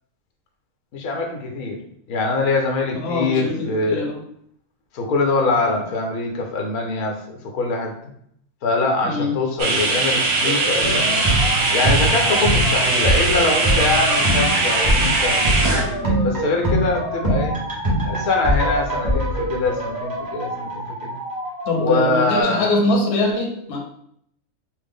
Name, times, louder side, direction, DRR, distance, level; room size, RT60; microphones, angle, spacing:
voice 1, 0.9-1.8 2.1-4.1 4.9-7.9 8.6-11.3 11.7-17.5 18.0-21.2 21.8-22.7, left 3 dB, 85° left, 2 dB, 1.1 m, -23 dB
voice 2, 2.9-4.2 9.0-9.3 21.7-23.8, left 2 dB, 55° left, 0 dB, 0.9 m, -22 dB
sound 1, 9.6-15.8, right 3 dB, 90° right, 1.2 m, -20 dB
sound 2, 10.4-22.4, equal, 25° left, 0.7 m, -31 dB
sound 3, 10.8-20.7 21.0-21.1, right 1 dB, 25° right, 0.5 m, -23 dB
3.2 x 2.1 x 3.5 m, 0.69 s
omnidirectional pair, 1.5 m